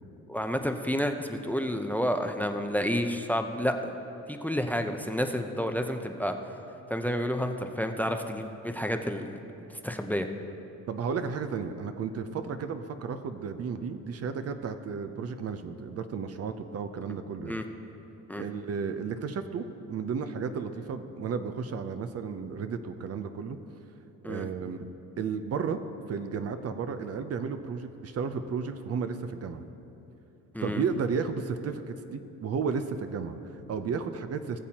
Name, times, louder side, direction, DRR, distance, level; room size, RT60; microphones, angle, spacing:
voice 1, 0.3-3.9 4.3-6.4 6.9-9.4 9.8-10.3 17.5-17.6 18.3-18.4 24.2-24.5 30.5-30.8, equal, 5° left, 6 dB, 0.6 m, -30 dB
voice 2, 10.9-17.6 18.3-23.6 24.3-24.9 25.2-25.8 26.1-29.6 30.6-34.6, right 5 dB, 55° right, 9 dB, 0.6 m, -33 dB
19.5 x 7.1 x 2.9 m, 2.9 s
cardioid pair, 90°, 30 cm